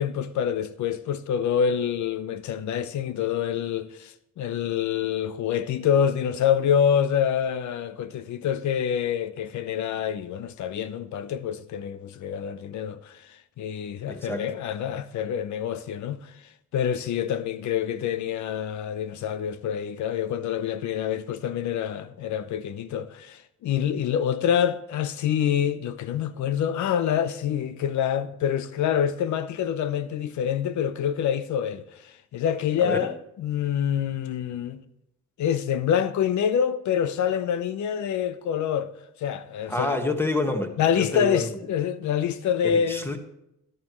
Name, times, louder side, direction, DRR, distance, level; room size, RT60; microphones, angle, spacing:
voice 1, 0.0-13.3 13.6-16.3 16.7-34.8 35.4-38.9 39.2-40.0 40.8-43.1, left 8 dB, 70° left, 0.8 m, -26 dB
voice 2, 14.0-14.5 32.8-33.1 39.7-41.5 42.6-43.2, left 2 dB, 10° left, 1.5 m, -28 dB
13.5 x 11.0 x 3.1 m
cardioid pair, 90°, 30 cm